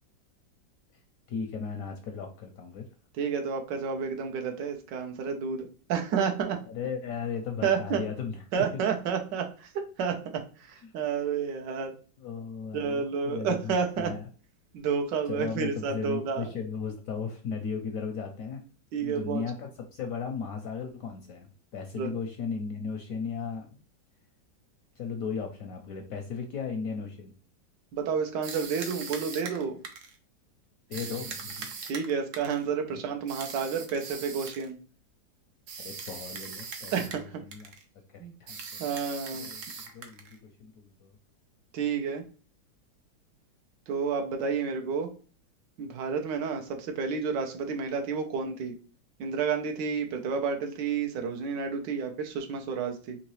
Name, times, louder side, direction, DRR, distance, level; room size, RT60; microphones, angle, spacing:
voice 1, 1.3-2.9 6.7-8.6 10.8-10.9 12.2-14.2 15.3-18.6 19.0-23.8 25.0-27.3 30.9-31.7 32.9-33.0 35.8-36.9 37.2-37.7 38.1-38.6 39.3-39.6 39.9-41.1, left 5 dB, 70° left, 4 dB, 0.8 m, -36 dB
voice 2, 3.2-6.6 7.6-8.0 8.5-11.9 12.7-14.1 14.7-16.4 18.9-19.4 22.0-22.1 27.9-29.8 31.9-34.8 36.9-37.3 38.2-38.3 38.8-39.5 41.7-42.2 43.9-45.1 45.8-48.8 49.2-53.2, right 6 dB, 80° right, 4 dB, 1.3 m, -30 dB
sound 1, 28.4-30.2 30.9-32.6 33.3-34.7 35.7-37.3 37.5-37.8 38.5-40.4, right 5 dB, 60° right, 0.8 m, -40 dB
3.7 x 2.9 x 3.0 m, 0.38 s
omnidirectional pair, 1.9 m